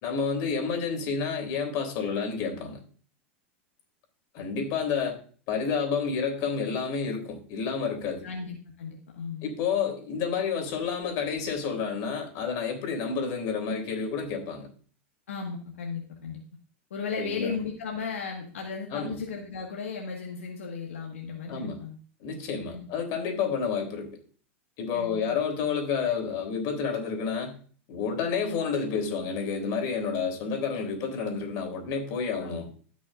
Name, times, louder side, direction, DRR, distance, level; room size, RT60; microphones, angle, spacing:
voice 1, 0.0-2.8 4.3-5.2 5.5-8.2 9.4-14.7 17.2-17.5 18.9-19.1 21.5-21.8 22.2-24.1 24.8-27.6 27.9-32.7, left 6 dB, 55° left, 3 dB, 3.4 m, -30 dB
voice 2, 8.2-9.5 15.3-16.4 16.9-22.0 22.7-22.9 24.9-25.2 32.4-32.7, left 5 dB, 90° left, -1 dB, 1.8 m, -35 dB
15.5 x 6.2 x 2.6 m, 0.42 s
hypercardioid pair, 110°, 7 cm